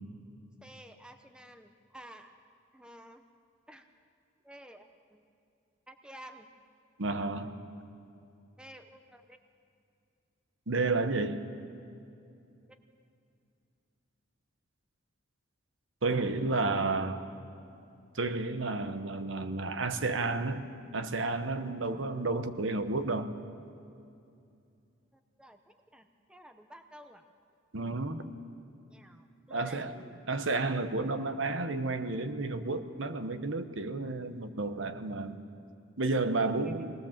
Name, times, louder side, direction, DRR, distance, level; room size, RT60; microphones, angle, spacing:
voice 1, 0.6-2.3 2.7-3.2 3.7-3.9 4.4-5.2 5.9-6.5 8.6-9.4 12.6-12.8 25.1-27.2 28.9-30.2 36.3-36.7, equal, 5° right, 7 dB, 0.8 m, -52 dB
voice 2, 7.0-7.5 10.7-11.5 16.0-17.2 18.1-23.3 27.7-28.3 29.5-29.9 30.3-35.4 36.0-36.9, right 3 dB, 70° right, 9 dB, 1.1 m, -31 dB
24.0 x 19.5 x 7.4 m, 2.6 s
head